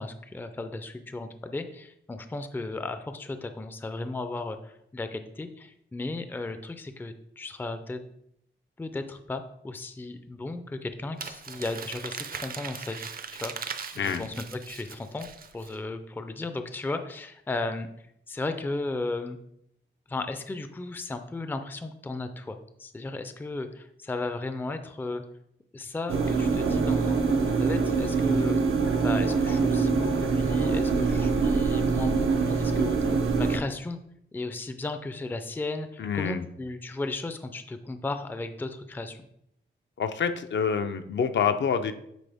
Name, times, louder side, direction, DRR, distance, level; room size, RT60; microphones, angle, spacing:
voice 1, 0.0-8.0 8.8-13.0 13.3-17.9 18.3-19.4 20.1-25.2 25.7-28.6 29.0-34.0 34.3-39.2, left 2 dB, 10° left, 8 dB, 0.4 m, -35 dB
Crumpling crinkling, 11.2-15.8, right 6 dB, 45° right, 0.5 m, -39 dB
sound 1, 26.1-33.6, right 4 dB, 90° right, 0.8 m, -24 dB
voice 2, 36.0-36.5 40.0-41.9, left 6 dB, 65° left, 8 dB, 0.5 m, -27 dB
9.1 x 4.2 x 3.4 m, 0.75 s
wide cardioid pair, 165°, 20 cm